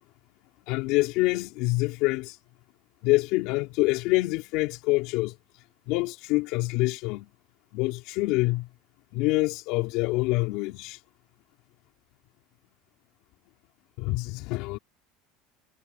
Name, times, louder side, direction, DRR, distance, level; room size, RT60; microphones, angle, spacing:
voice 1, 0.7-2.4 3.0-5.4 5.9-7.3 7.7-8.7 9.1-11.0 14.0-14.8, left 21 dB, 55° left, 4.0 m, -26 dB
cardioid pair, 170°, 0 cm